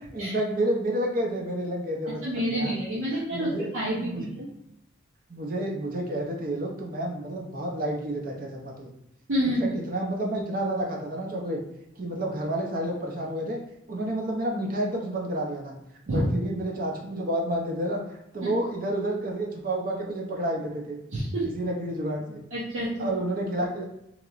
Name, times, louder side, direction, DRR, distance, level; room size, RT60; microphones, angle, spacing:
voice 1, 0.1-2.8 3.1-4.3 5.3-8.9 9.4-11.6 12.0-13.6 13.9-15.7 16.1-18.0 18.3-21.0 21.5-22.4 23.0-23.9, right 1 dB, 45° right, 0 dB, 0.6 m, -30 dB
voice 2, 2.2-4.5 9.3-9.7 16.1-16.3 18.4-18.5 21.1-21.5 22.5-23.1, equal, 85° right, -8 dB, 0.8 m, -28 dB
3.0 x 2.8 x 2.4 m, 0.81 s
head